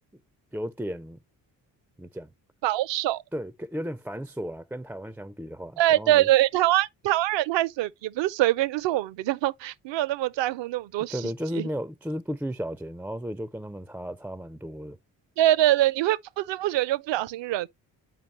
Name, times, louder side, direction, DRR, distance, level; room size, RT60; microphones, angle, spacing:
voice 1, 0.5-1.2 2.0-2.3 3.3-6.3 11.1-15.0, equal, 5° right, 0.3 m, -34 dB
voice 2, 2.6-3.2 5.8-11.7 15.4-17.7, right 14 dB, 65° right, 0.6 m, -24 dB
7.7 x 5.1 x 3.0 m
hypercardioid pair, 45°, 47 cm